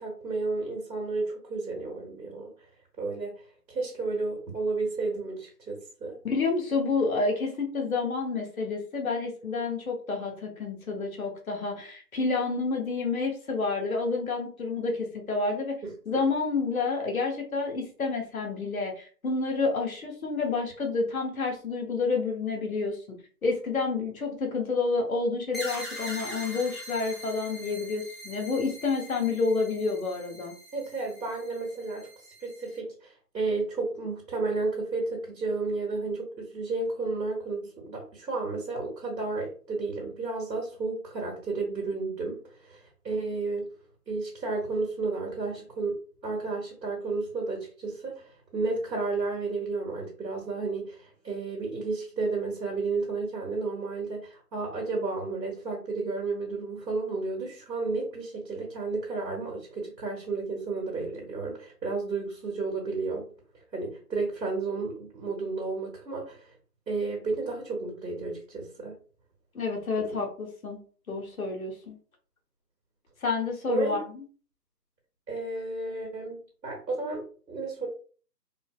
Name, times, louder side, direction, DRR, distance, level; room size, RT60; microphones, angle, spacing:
voice 1, 0.0-2.5 3.0-3.3 3.7-6.1 15.8-15.9 30.7-32.1 32.4-43.7 44.1-46.0 46.2-63.2 63.7-66.5 66.9-69.0 70.0-70.2 73.7-74.0 75.3-76.4 76.6-77.9, right 3 dB, 85° right, -1 dB, 1.3 m, -32 dB
voice 2, 6.2-15.8 16.1-23.0 23.4-30.5 69.5-70.8 71.1-72.0 73.2-74.2, left 4 dB, 55° left, 1 dB, 0.9 m, -29 dB
sound 1, 25.5-32.8, equal, ahead, 0.5 m, -42 dB
3.8 x 2.0 x 2.2 m, 0.41 s
hypercardioid pair, 180°, 49 cm